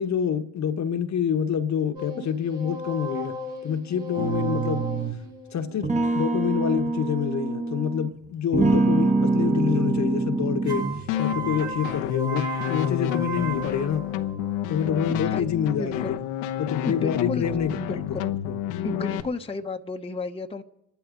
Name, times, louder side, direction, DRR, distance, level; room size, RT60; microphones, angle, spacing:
voice 1, 0.0-3.3 3.6-4.8 5.5-10.9 11.2-14.0 14.7-16.2 16.6-18.1 18.5-18.6, left 8 dB, 50° left, 1.1 m, -27 dB
sound 1, 1.9-7.3 10.6-14.6, right 2 dB, 70° right, 6.5 m, -36 dB
sound 2, 4.2-5.3 5.8-8.1 8.5-11.1, right 3 dB, 20° right, 1.2 m, -25 dB
sound 3, 11.1-19.2, left 11 dB, 90° left, 0.9 m, -29 dB
voice 2, 15.1-15.5 15.8-16.2 16.8-17.5 17.7-18.4 18.8-20.6, left 3 dB, 15° left, 0.9 m, -32 dB
26.5 x 12.0 x 3.8 m
supercardioid pair, 70°, 37 cm